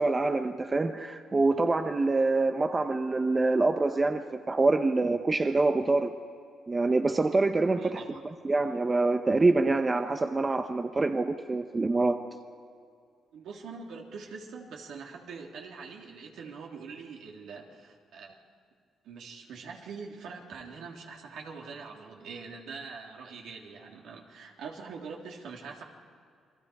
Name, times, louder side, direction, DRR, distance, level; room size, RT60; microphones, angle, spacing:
voice 1, 0.0-6.1 6.7-8.0 8.4-12.2, right 3 dB, 25° right, 7 dB, 1.0 m, -25 dB
voice 2, 7.8-8.2 13.3-18.4 19.0-25.8, right 5 dB, 75° right, 0 dB, 3.1 m, -43 dB
28.5 x 21.5 x 4.9 m, 2.3 s
cardioid pair, 90°, 0 cm